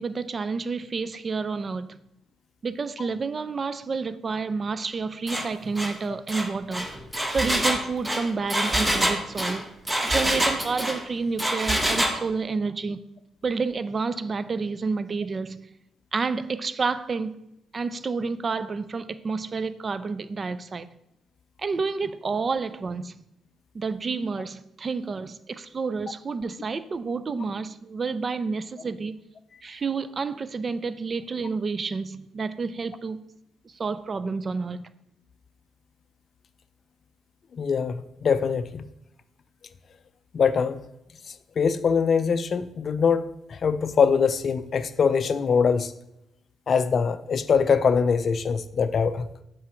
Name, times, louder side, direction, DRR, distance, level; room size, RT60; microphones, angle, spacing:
voice 1, 0.0-2.0 2.6-6.9 7.3-9.6 10.0-13.0 13.4-15.7 16.1-17.3 17.7-20.9 21.6-23.2 23.7-29.2 29.6-33.2 33.6-34.9, right 4 dB, 35° right, 0.4 m, -29 dB
Engine, 5.3-5.5 5.8-5.9 6.3-11.0 11.4-12.2, right 1 dB, 15° right, 0.9 m, -25 dB
voice 2, 37.5-38.9 40.3-40.8 41.6-43.2 43.5-45.9 46.7-49.4, left 6 dB, 50° left, 0.4 m, -23 dB
7.3 x 4.7 x 3.0 m
cardioid pair, 90°, 0 cm